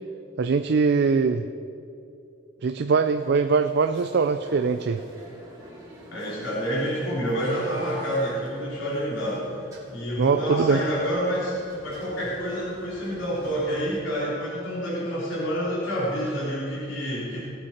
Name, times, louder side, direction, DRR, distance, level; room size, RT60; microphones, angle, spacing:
voice 1, 0.4-1.4 2.6-5.0 10.2-10.8, right 5 dB, 55° right, 8 dB, 0.4 m, -22 dB
sound 1, 3.0-14.0, equal, 15° right, 2.5 m, -46 dB
voice 2, 6.1-9.6 9.9-11.6 11.8-17.4, equal, 75° left, -7 dB, 3.4 m, -28 dB
19.0 x 8.0 x 4.3 m, 2.6 s
head